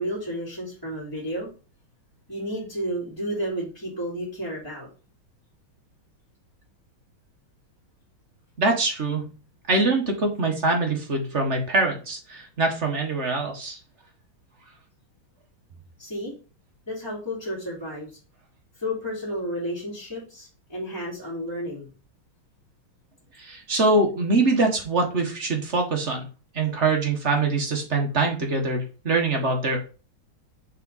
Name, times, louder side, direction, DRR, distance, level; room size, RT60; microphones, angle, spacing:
voice 1, 0.0-1.5 2.3-4.9 16.0-16.3 16.9-18.1 18.7-21.9, equal, 10° left, -10 dB, 2.7 m, -32 dB
voice 2, 8.6-9.3 9.7-13.8 23.4-26.2 26.5-29.8, right 3 dB, 40° right, 2 dB, 1.4 m, -23 dB
6.1 x 4.1 x 4.0 m, 0.35 s
omnidirectional pair, 2.3 m